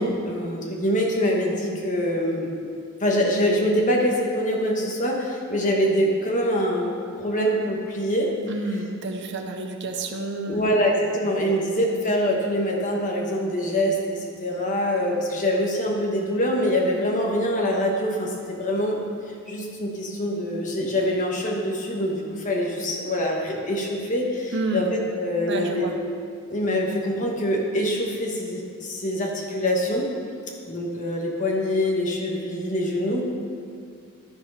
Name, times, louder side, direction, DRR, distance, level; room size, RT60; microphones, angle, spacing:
voice 1, 0.0-2.5 3.0-8.3 10.5-19.0 19.5-25.9 26.5-30.1 30.7-33.2, equal, 35° left, -1 dB, 1.3 m, -24 dB
voice 2, 8.5-10.7 24.5-24.9 25.5-25.9, right 2 dB, 55° right, 4 dB, 0.8 m, -29 dB
12.0 x 4.4 x 5.6 m, 2.2 s
head